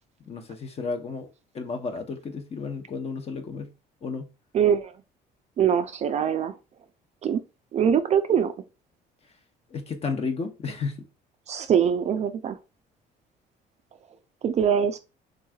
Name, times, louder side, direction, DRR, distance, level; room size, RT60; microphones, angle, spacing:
voice 1, 0.3-1.3 1.5-3.7 4.0-4.3 9.7-11.0, left 4 dB, 35° left, 0.7 m, -32 dB
voice 2, 4.5-4.9 5.6-6.5 7.2-7.4 7.7-8.5 11.5-12.6 14.4-15.0, right 8 dB, 40° right, 0.4 m, -23 dB
3.6 x 3.1 x 2.3 m
cardioid pair, 110°, 17 cm